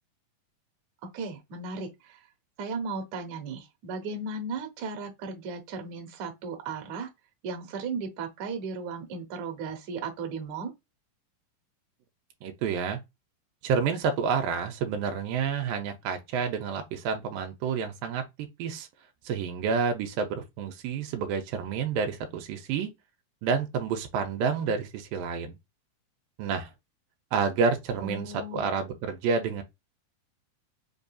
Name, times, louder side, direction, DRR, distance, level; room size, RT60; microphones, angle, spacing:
voice 1, 1.1-2.2 2.6-7.1 7.4-10.7 28.0-28.7, right 4 dB, 65° right, 2.1 m, -36 dB
voice 2, 12.4-13.0 13.6-18.9 19.3-22.9 23.4-25.6 26.4-26.7 27.3-29.6, right 6 dB, 85° right, 2.4 m, -29 dB
5.4 x 2.6 x 2.2 m
omnidirectional pair, 4.0 m